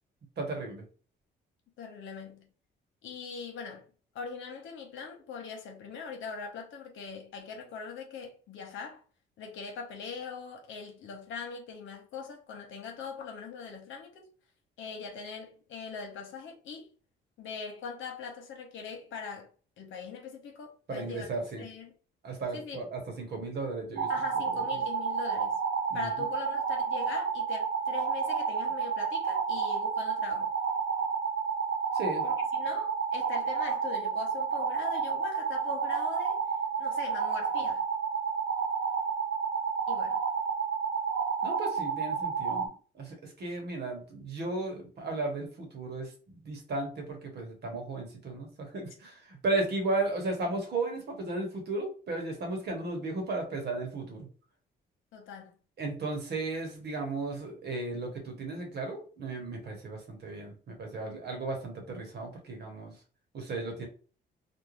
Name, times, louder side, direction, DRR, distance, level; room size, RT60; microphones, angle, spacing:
voice 1, 0.4-0.8 20.9-21.6 22.2-24.1 24.4-24.6 25.9-26.1 31.9-32.2 41.4-42.7 43.0-46.1 46.4-54.3 55.8-62.9 63.3-63.9, right 2 dB, 55° right, 1.2 m, -35 dB
voice 2, 1.8-2.5 3.0-3.8 4.1-9.0 9.4-14.2 14.8-16.9 17.4-19.5 19.8-21.3 21.6-21.9 22.5-22.8 24.1-25.6 25.9-30.5 32.2-36.4 36.8-37.8 39.9-40.2 55.1-55.5, left 5 dB, 75° left, 0.8 m, -41 dB
sound 1, 24.0-42.7, right 6 dB, 85° right, 0.5 m, -30 dB
2.6 x 2.1 x 3.1 m
cardioid pair, 90°, 20 cm